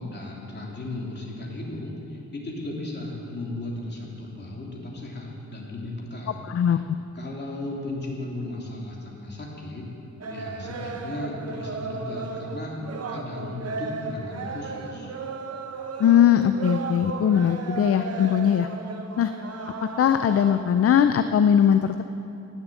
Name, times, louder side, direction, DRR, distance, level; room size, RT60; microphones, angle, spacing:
voice 1, 0.0-6.4 6.7-6.8 7.1-9.9 10.3-12.7 13.1-15.1, left 2 dB, 35° left, -3 dB, 2.8 m, -35 dB
voice 2, 6.5-7.0 16.0-18.7 19.2-19.3 20.0-22.0, left 9 dB, 50° left, 9 dB, 0.5 m, -20 dB
sound 1, 10.2-20.6, right 4 dB, 55° right, 1.1 m, -35 dB
18.5 x 7.2 x 8.3 m, 2.9 s
wide cardioid pair, 145°, 30 cm